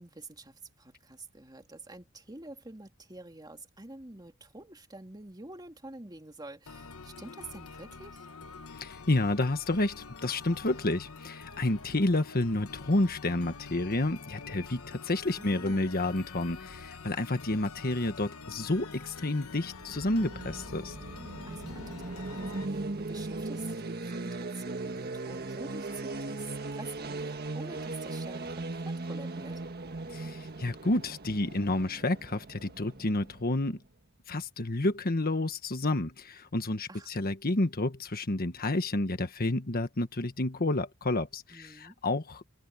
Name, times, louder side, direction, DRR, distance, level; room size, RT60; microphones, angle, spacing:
voice 1, 0.0-8.3 15.4-15.9 21.5-29.6 36.9-37.1 41.5-41.9, right 2 dB, 20° right, 2.8 m, -48 dB
sound 1, 6.7-22.7, left 4 dB, 85° left, 1.2 m, -46 dB
voice 2, 8.8-20.9 30.1-33.8 34.3-42.4, left 2 dB, 45° left, 1.4 m, -30 dB
sound 2, 19.8-33.7, right 2 dB, 50° right, 1.6 m, -38 dB
head